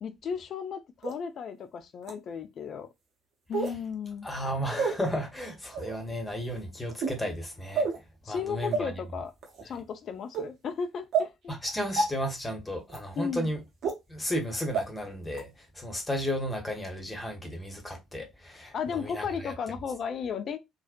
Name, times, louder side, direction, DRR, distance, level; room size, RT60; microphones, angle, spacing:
voice 1, 0.0-2.9 3.5-4.3 8.2-9.3 9.6-11.6 13.2-13.5 18.7-20.6, left 6 dB, 45° left, 0.3 m, -34 dB
sound 1, 1.0-1.1 2.0-2.1 3.5-3.8 4.7-4.9 5.7-5.9 6.9-7.2 7.8-8.0 8.7-8.8 9.4-9.6 10.3-10.4 11.1-11.3 12.0-12.1 12.9-13.0 13.8-13.9 14.7-14.8 15.3-15.4, right 4 dB, 50° right, 0.6 m, -28 dB
voice 2, 4.2-7.9 8.3-9.0 11.5-13.6 14.1-15.5 15.7-19.5, equal, 15° left, 0.8 m, -33 dB
2.5 x 2.0 x 2.4 m
figure-of-eight pair, 50°, 0 cm